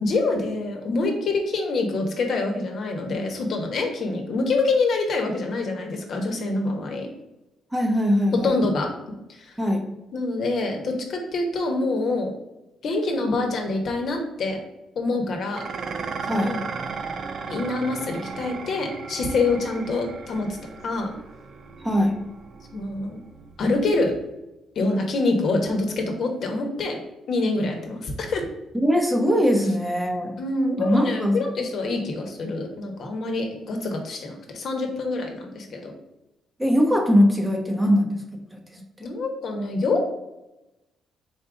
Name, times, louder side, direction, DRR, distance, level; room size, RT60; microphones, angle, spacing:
voice 1, 0.0-7.1 8.4-8.9 9.3-9.5 10.1-12.3 12.8-14.6 14.9-15.6 16.3-16.6 17.5-20.5 20.8-21.1 22.7-23.2 23.6-24.1 24.7-27.0 27.3-28.5 30.4-35.9 39.0-40.0, left 3 dB, 60° left, 3 dB, 1.0 m, -26 dB
voice 2, 7.7-8.5 9.6-9.8 16.3-16.5 21.8-22.2 28.8-30.4 30.8-31.4 36.6-38.2 38.5-38.6 39.0-39.1, equal, 10° right, 2 dB, 0.9 m, -21 dB
Dishes pots and pans, 15.5-24.3, right 5 dB, 55° right, 0.4 m, -36 dB
4.1 x 2.5 x 4.7 m, 0.95 s
cardioid pair, 90°, 0 cm